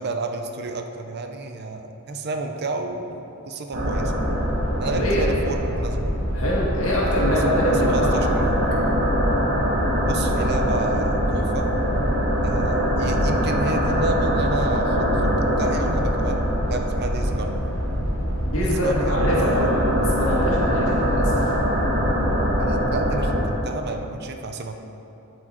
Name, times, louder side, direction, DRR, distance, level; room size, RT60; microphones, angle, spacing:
voice 1, 0.0-4.2 4.8-6.2 7.5-8.5 10.1-11.7 12.4-17.6 18.6-19.7 22.6-24.7, right 2 dB, 50° right, 5 dB, 0.6 m, -31 dB
sound 1, 3.7-23.5, equal, 80° right, 1.9 m, -22 dB
voice 2, 4.8-5.3 6.3-8.3 18.4-21.5, equal, 70° left, -5 dB, 2.1 m, -24 dB
12.0 x 5.0 x 4.4 m, 2.9 s
head